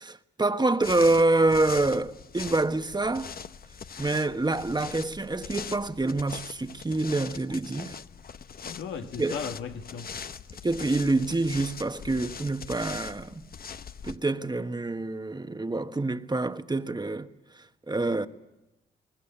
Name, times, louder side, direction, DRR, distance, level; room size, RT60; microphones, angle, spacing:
voice 1, 0.0-3.3 4.0-8.0 9.2-9.4 10.6-13.5 14.0-18.3, right 2 dB, 20° right, 1.3 m, -27 dB
sound 1, 0.8-14.2, left 6 dB, 50° left, 0.8 m, -41 dB
voice 2, 8.6-10.1, left 6 dB, 80° left, 1.7 m, -36 dB
22.5 x 20.0 x 8.7 m
supercardioid pair, 50°, 19 cm